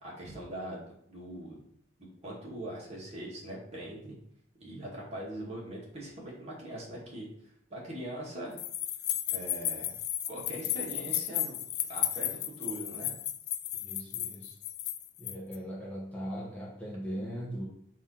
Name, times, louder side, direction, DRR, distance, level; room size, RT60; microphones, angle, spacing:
voice 1, 0.0-1.6 2.0-4.2 4.6-7.3 7.7-8.6 9.3-10.0 10.3-11.6 11.9-13.1, right 1 dB, 35° right, -5 dB, 2.1 m, -41 dB
sound 1, 8.6-15.6, left 12 dB, 55° left, 0.4 m, -34 dB
voice 2, 13.8-14.6 15.2-17.6, equal, 10° left, -5 dB, 1.2 m, -39 dB
5.8 x 3.0 x 5.7 m, 0.68 s
head